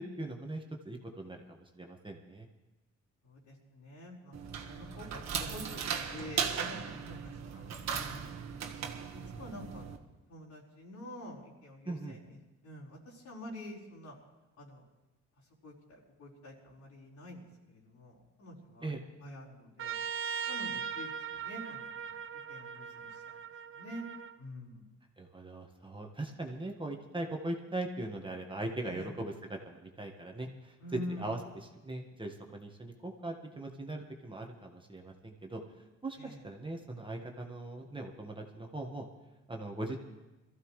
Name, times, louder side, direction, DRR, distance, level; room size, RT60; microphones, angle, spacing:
voice 1, 0.0-2.5 11.8-12.2 18.8-19.0 25.2-35.6 36.0-39.1 39.5-40.0, right 2 dB, 15° right, 1 dB, 1.6 m, -40 dB
voice 2, 3.2-4.3 4.6-7.6 7.9-8.3 8.6-8.7 9.4-9.9 10.3-12.2 12.6-14.1 14.6-14.8 15.6-17.4 17.7-18.9 19.2-20.0 20.5-22.1 22.5-23.3 23.7-24.0 24.4-24.8 28.8-29.1 30.8-31.3 36.2-36.4, left 1 dB, 65° left, -5 dB, 4.8 m, -47 dB
sound 1, 4.3-10.0, right 6 dB, 60° right, 1.6 m, -37 dB
Trumpet, 19.8-24.3, right 7 dB, 45° right, 0.6 m, -39 dB
22.5 x 14.5 x 3.3 m, 1.1 s
cardioid pair, 90°, 30 cm